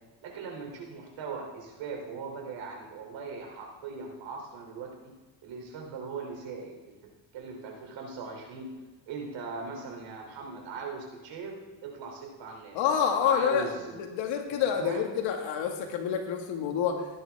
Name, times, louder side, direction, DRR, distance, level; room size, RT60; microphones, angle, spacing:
voice 1, 0.2-5.1 5.4-6.9 7.3-8.7 9.1-12.8 13.2-13.9 14.8-15.0, right 4 dB, 75° right, 1 dB, 3.3 m, -39 dB
voice 2, 12.7-13.7 14.1-17.1, left 8 dB, 90° left, 3 dB, 2.0 m, -27 dB
16.5 x 10.5 x 3.5 m, 1.2 s
cardioid pair, 105°, 45 cm